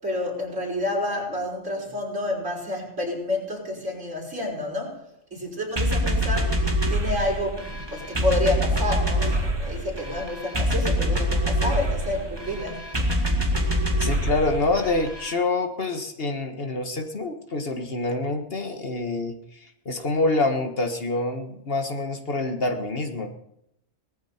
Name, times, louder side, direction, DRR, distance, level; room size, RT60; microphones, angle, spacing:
voice 1, 0.0-5.0 5.3-13.2, left 1 dB, 70° right, -3 dB, 6.0 m, -29 dB
sound 1, 5.8-15.3, equal, 20° right, 1.9 m, -25 dB
voice 2, 14.0-23.3, left 2 dB, 50° left, 5 dB, 1.7 m, -26 dB
19.0 x 14.5 x 4.4 m, 0.79 s
omnidirectional pair, 1.3 m